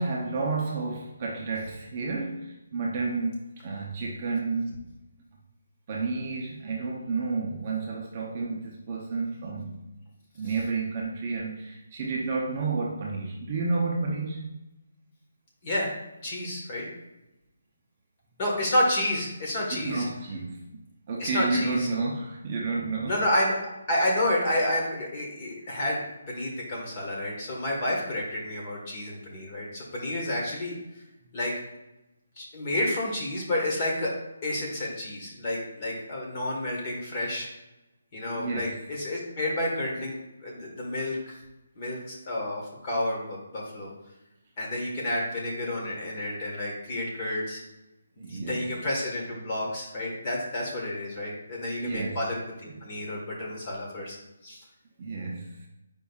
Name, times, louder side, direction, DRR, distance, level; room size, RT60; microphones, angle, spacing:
voice 1, 0.0-4.8 5.9-9.8 10.3-14.4 19.7-20.6 21.1-23.2 38.3-38.7 48.2-48.7 51.8-52.2 55.0-55.7, right 3 dB, 20° right, -2 dB, 0.6 m, -31 dB
voice 2, 15.6-16.9 18.4-20.0 21.2-21.9 23.0-31.0 31.3-31.6 32.4-37.5 38.1-40.2 40.4-41.4 41.8-43.9 44.6-47.6 48.2-54.2 54.4-54.6, left 1 dB, 20° left, -3 dB, 1.2 m, -30 dB
8.6 x 5.2 x 2.3 m, 0.94 s
hypercardioid pair, 180°, 0 cm